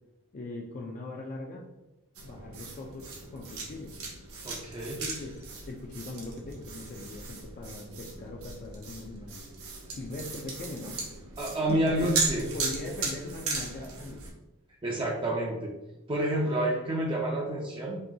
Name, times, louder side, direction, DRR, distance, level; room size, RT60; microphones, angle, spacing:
voice 1, 0.3-1.7 2.2-3.9 5.0-5.4 5.7-9.5 9.9-11.0 11.7-14.2, left 2 dB, 35° left, 0 dB, 0.4 m, -40 dB
sound 1, 2.1-14.3, right 3 dB, 70° right, 1.0 m, -37 dB
voice 2, 4.4-5.0 11.4-12.4 14.8-15.7 16.1-18.0, right 1 dB, 20° right, -1 dB, 0.4 m, -29 dB
5.3 x 2.3 x 2.7 m, 0.99 s
head